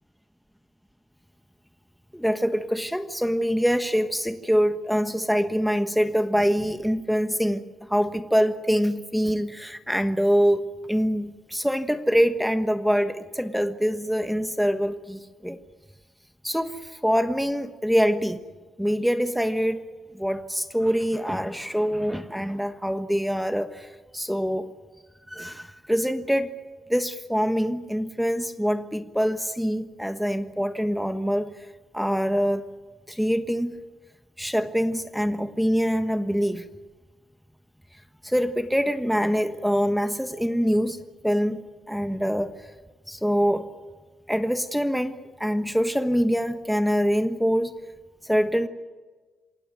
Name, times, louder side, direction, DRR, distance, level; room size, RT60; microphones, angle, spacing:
voice 1, 2.1-7.6 7.9-10.6 10.9-15.6 16.4-18.4 18.8-19.8 20.2-23.9 24.1-24.7 25.3-26.5 26.9-31.5 31.9-32.6 33.1-33.8 34.4-36.6 38.2-41.0 41.2-41.6 41.9-42.5 43.1-43.6 44.3-45.1 45.4-47.7 48.2-48.7, equal, ahead, 8 dB, 1.3 m, -24 dB
27.0 x 17.0 x 9.2 m, 1.3 s
cardioid pair, 80°, 0 cm